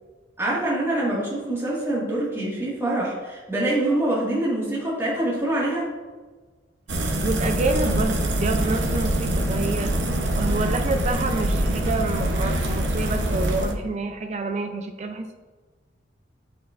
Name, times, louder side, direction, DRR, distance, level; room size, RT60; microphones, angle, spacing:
voice 1, 0.4-5.9, right 1 dB, 15° right, -7 dB, 1.7 m, -25 dB
sound 1, 6.9-13.7, right 1 dB, 75° right, 0.8 m, -24 dB
voice 2, 7.2-9.9 10.3-15.3, right 3 dB, 35° right, 6 dB, 0.4 m, -28 dB
11.5 x 4.7 x 2.5 m, 1.3 s
head